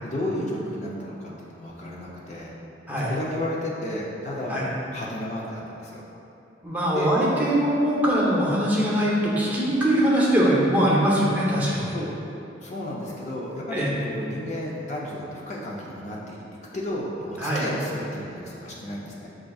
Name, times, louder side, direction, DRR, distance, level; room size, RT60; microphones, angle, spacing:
voice 1, 0.0-2.5 3.0-4.6 4.9-6.0 6.9-7.1 11.9-12.1 12.6-19.3, left 1 dB, 40° left, -4 dB, 0.5 m, -33 dB
voice 2, 6.6-11.8 13.7-14.0 17.4-17.7, equal, 10° right, -7 dB, 0.7 m, -22 dB
7.5 x 2.5 x 2.3 m, 2.9 s
head